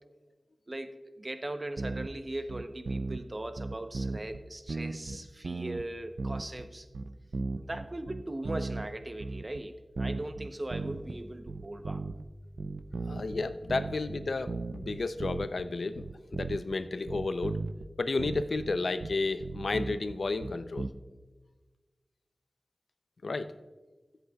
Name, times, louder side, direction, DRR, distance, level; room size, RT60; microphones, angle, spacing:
voice 1, 0.7-6.9 7.6-12.0, right 1 dB, 35° right, 8 dB, 0.8 m, -39 dB
sound 1, 1.8-2.2 2.5-3.2 3.6-4.4 4.7-5.8 6.2-6.7 6.9-8.9 9.2-9.6 10.0-11.2 11.5-12.2 12.6-15.6 16.0-16.8 17.1-17.9 18.2-20.9, right 3 dB, 90° right, 0.5 m, -36 dB
voice 2, 13.1-17.6 18.0-20.9 23.2-23.5, left 3 dB, 75° left, 11 dB, 0.5 m, -32 dB
23.0 x 8.0 x 2.3 m, 1.3 s
wide cardioid pair, 75°, 0 cm